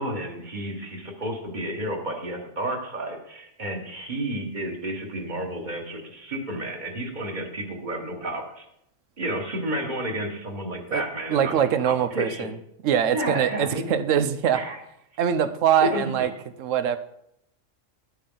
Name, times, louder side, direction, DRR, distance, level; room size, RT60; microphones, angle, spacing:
voice 1, 0.0-8.7 9.2-12.5 13.1-14.0 14.5-14.8 15.8-16.3, right 1 dB, 35° right, 2 dB, 1.7 m, -31 dB
voice 2, 11.3-12.5 12.8-14.6 15.2-16.3 16.6-17.0, right 9 dB, 85° right, 12 dB, 1.1 m, -23 dB
11.5 x 8.4 x 3.9 m, 0.77 s
omnidirectional pair, 1.3 m